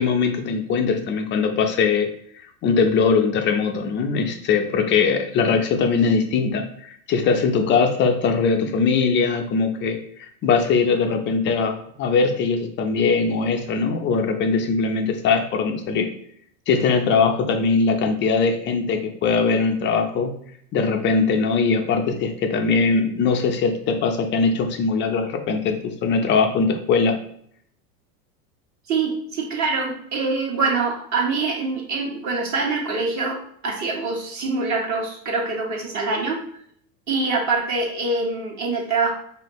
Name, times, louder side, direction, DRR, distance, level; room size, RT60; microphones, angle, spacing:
voice 1, 0.0-2.1 2.6-16.1 16.7-20.4 20.7-27.2, left 5 dB, 25° left, 5 dB, 0.4 m, -21 dB
voice 2, 28.9-33.4 33.6-36.4 37.1-39.1, right 3 dB, 40° right, -1 dB, 1.3 m, -24 dB
4.9 x 2.7 x 3.0 m, 0.67 s
hypercardioid pair, 100°, 46 cm